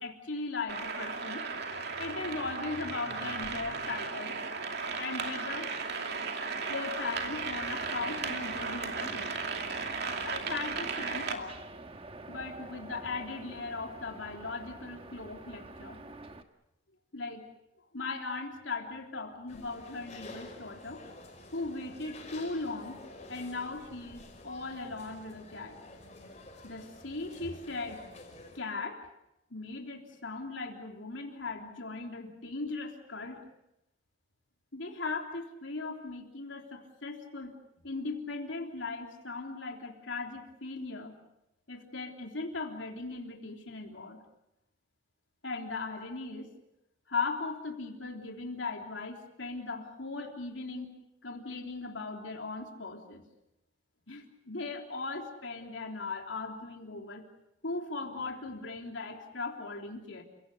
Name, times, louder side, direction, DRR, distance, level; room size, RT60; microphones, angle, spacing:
voice 1, 0.0-1.5 2.0-4.4 5.0-5.7 6.7-9.3 10.2-11.6 12.3-16.0 17.1-17.4 17.9-21.0 21.5-23.0 23.3-25.8 26.6-28.0 28.6-29.1 29.5-33.4 34.7-37.5 37.8-41.2 41.7-44.2 45.4-46.5 47.1-50.9 51.2-53.2 54.1-57.2 57.6-60.2, left 3 dB, 75° left, 2 dB, 3.5 m, -38 dB
sound 1, 0.7-11.3, right 4 dB, 55° right, 2.6 m, -36 dB
sound 2, 7.1-16.4, right 2 dB, 30° right, 1.3 m, -48 dB
sound 3, 19.5-28.6, left 2 dB, 35° left, 5.5 m, -50 dB
30.0 x 17.5 x 8.0 m, 0.86 s
head